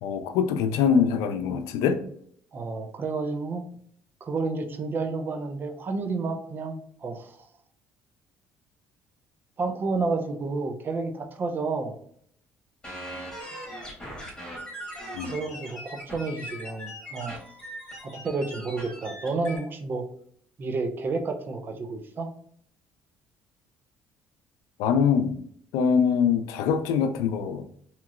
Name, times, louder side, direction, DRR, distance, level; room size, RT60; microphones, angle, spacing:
voice 1, 0.0-2.0 15.1-15.3 24.8-25.4 25.7-27.6, left 7 dB, 85° left, 8 dB, 0.3 m, -23 dB
voice 2, 2.5-3.6 4.2-7.4 9.6-12.0 15.2-17.4 18.0-20.0 20.6-22.3, right 3 dB, 40° right, 6 dB, 0.5 m, -30 dB
sound 1, 12.8-19.6, equal, 10° left, 1.4 m, -40 dB
2.8 x 2.8 x 2.4 m, 0.63 s
cardioid pair, 95°, 6 cm